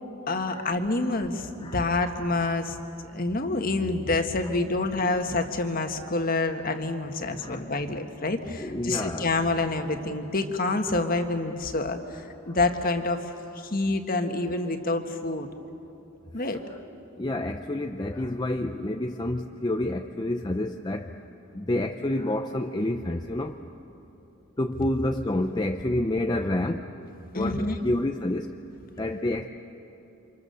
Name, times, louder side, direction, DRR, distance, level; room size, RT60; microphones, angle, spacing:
voice 1, 0.3-2.8 3.1-15.5 16.3-16.6 27.3-27.8, left 2 dB, 45° left, 6 dB, 1.6 m, -27 dB
voice 2, 8.6-9.3 12.5-12.6 17.2-21.1 21.5-23.6 24.6-26.9 27.3-28.5 29.0-29.5, left 1 dB, 20° left, 4 dB, 0.7 m, -28 dB
30.0 x 26.5 x 6.9 m, 2.9 s
head